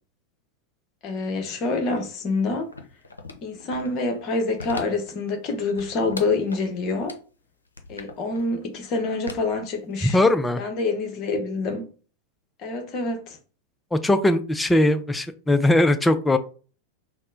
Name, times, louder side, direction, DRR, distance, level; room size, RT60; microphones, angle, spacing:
voice 1, 1.0-2.7 3.4-7.2 7.9-10.2 10.6-11.9 12.6-13.4, left 3 dB, 40° left, 1.0 m, -26 dB
sound 1, 2.7-4.0 4.4-5.1 5.4-6.7 7.1-7.2 7.7-8.4 9.3-10.2 10.5-10.6, left 3 dB, 75° left, 0.6 m, -38 dB
voice 2, 10.0-10.6 13.9-16.4, left 1 dB, 10° left, 0.4 m, -20 dB
4.1 x 2.1 x 3.8 m
figure-of-eight pair, 90°, 0 cm